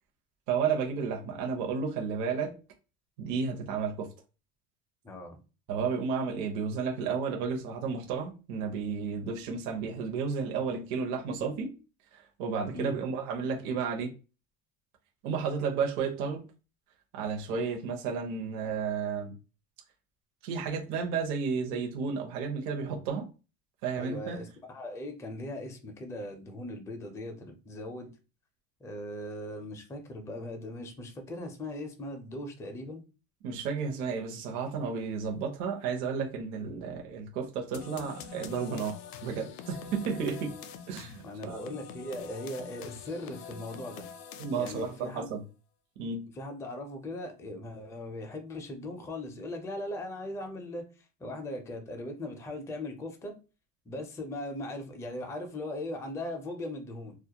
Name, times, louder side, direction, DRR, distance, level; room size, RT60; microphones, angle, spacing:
voice 1, 0.5-2.5 3.2-4.1 5.7-11.8 12.1-14.1 15.2-16.4 17.1-19.3 20.4-23.3 23.8-24.4 33.4-39.0 39.2-40.5 40.9-41.6 44.4-45.4 46.0-46.3, right 5 dB, 60° right, 0.8 m, -32 dB
voice 2, 5.0-5.4 12.7-13.0 23.9-28.1 28.8-33.0 40.1-40.2 41.2-44.1 44.6-45.3 46.4-53.3 53.9-57.2, left 1 dB, 10° left, 0.4 m, -39 dB
sound 1, 37.7-45.1, left 8 dB, 65° left, 0.5 m, -45 dB
2.3 x 2.1 x 2.8 m
supercardioid pair, 135°, 33 cm